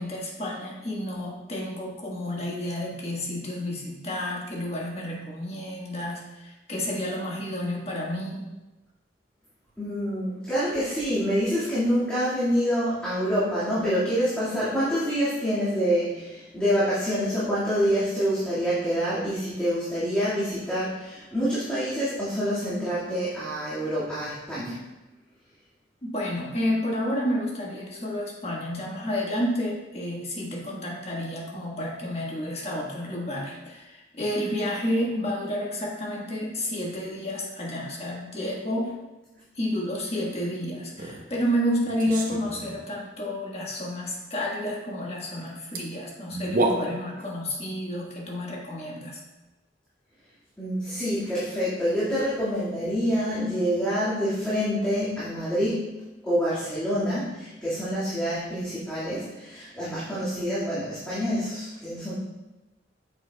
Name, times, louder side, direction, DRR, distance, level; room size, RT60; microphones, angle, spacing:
voice 1, 0.0-8.5 26.0-38.9 39.5-49.2, left 1 dB, 35° left, -3 dB, 1.4 m, -30 dB
voice 2, 9.8-24.8 50.6-55.9 56.2-62.1, equal, 5° left, -12 dB, 1.9 m, -26 dB
sound 1, 40.9-41.2 41.9-42.9 45.5-45.6 45.7-45.8 46.3-47.3, right 2 dB, 50° right, 0.9 m, -29 dB
8.6 x 6.8 x 2.3 m, 1.1 s
head